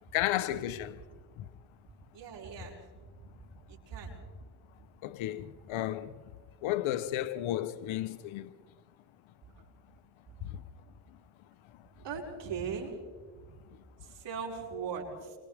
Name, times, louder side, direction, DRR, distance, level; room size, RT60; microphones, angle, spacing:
voice 1, 0.1-1.0 1.4-1.5 5.0-6.2 6.6-8.5, left 13 dB, 80° left, 1.1 m, -33 dB
voice 2, 2.1-2.8 3.7-4.1 12.0-12.9 14.1-15.4, right 6 dB, 60° right, 6.2 m, -38 dB
29.5 x 25.0 x 3.6 m
supercardioid pair, 75°, 48 cm